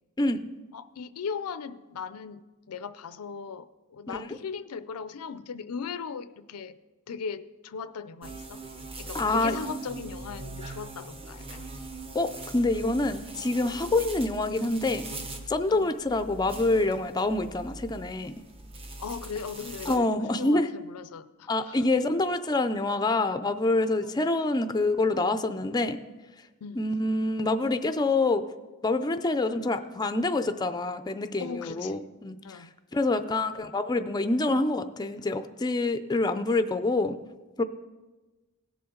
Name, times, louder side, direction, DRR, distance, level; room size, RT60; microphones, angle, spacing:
voice 1, 0.7-6.8 7.1-8.6 9.0-11.7 15.7-15.9 19.0-21.8 24.0-24.1 26.6-26.8 31.4-32.1 32.4-32.7, left 6 dB, 85° left, 14 dB, 0.5 m, -38 dB
sound 1, 8.2-20.0, right 3 dB, 25° right, 0.9 m, -41 dB
voice 2, 9.1-9.6 12.1-15.1 15.5-18.4 19.9-20.7 21.5-26.0 26.8-28.4 28.8-32.6 32.9-37.2 37.6-37.7, left 2 dB, 20° left, 10 dB, 0.4 m, -26 dB
17.0 x 6.9 x 3.8 m, 1.2 s
head